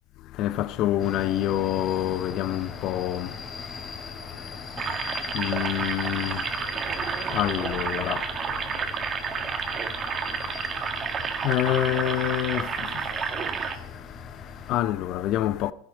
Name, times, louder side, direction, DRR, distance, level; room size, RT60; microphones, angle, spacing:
voice 1, 0.3-15.7, left 13 dB, 50° left, 0.7 m, -29 dB
sound 1, 1.0-14.8, left 4 dB, 25° left, 2.8 m, -40 dB
sound 2, 4.8-13.8, right 6 dB, 35° right, 1.6 m, -30 dB
13.5 x 10.5 x 5.0 m
hypercardioid pair, 90°, 0 cm